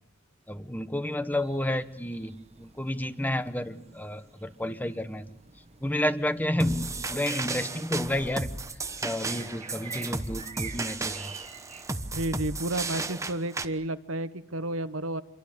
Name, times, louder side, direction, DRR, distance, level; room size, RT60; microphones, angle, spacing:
voice 1, 0.5-5.3 5.8-8.5 9.0-11.3, left 1 dB, 10° left, 11 dB, 1.2 m, -31 dB
sound 1, 1.3-11.9, right 5 dB, 30° right, 1.6 m, -49 dB
sound 2, 6.6-13.6, right 3 dB, 15° right, 1.1 m, -34 dB
voice 2, 12.1-15.2, right 1 dB, 85° right, 12 dB, 1.3 m, -31 dB
27.5 x 23.0 x 8.6 m, 0.85 s
head